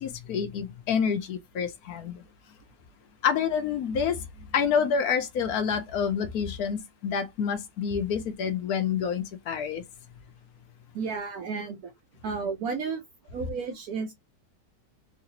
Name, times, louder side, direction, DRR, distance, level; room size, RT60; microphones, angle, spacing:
voice 1, 0.0-2.2 3.2-9.8, left 7 dB, 70° left, 1.0 m, -28 dB
voice 2, 10.9-11.9 12.2-13.0 13.3-14.1, right 5 dB, 70° right, 1.0 m, -32 dB
3.2 x 2.7 x 2.7 m
omnidirectional pair, 1.9 m